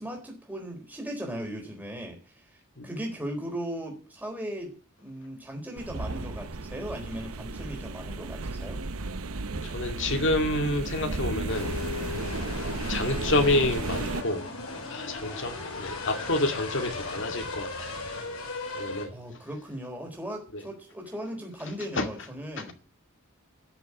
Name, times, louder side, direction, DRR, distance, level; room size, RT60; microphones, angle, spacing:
voice 1, 0.0-2.6 2.8-8.8 19.1-22.7, equal, 10° right, 4.0 m, -37 dB
sound 1, 5.8-14.2, right 3 dB, 80° right, 0.9 m, -34 dB
voice 2, 9.6-11.7 12.9-14.5 14.9-17.9 18.7-19.1 20.5-20.6 22.0-22.1 22.6-22.7, left 2 dB, 60° left, 2.2 m, -28 dB
sound 2, 11.5-19.1, left 3 dB, 85° left, 4.8 m, -37 dB
13.5 x 6.9 x 9.9 m
head